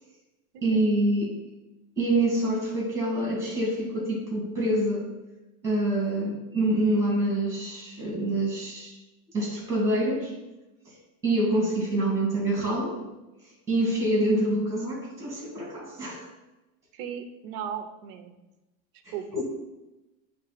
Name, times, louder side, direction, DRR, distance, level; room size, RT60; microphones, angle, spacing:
voice 1, 0.6-1.4 2.0-5.1 5.6-9.0 9.3-10.3 10.9-11.0 11.2-13.0 13.7-16.3 19.0-19.4, right 1 dB, 5° right, -4 dB, 2.1 m, -26 dB
voice 2, 16.9-18.3 19.1-19.4, right 8 dB, 40° right, 7 dB, 0.6 m, -37 dB
9.0 x 3.4 x 5.8 m, 1.0 s
supercardioid pair, 175°, 45 cm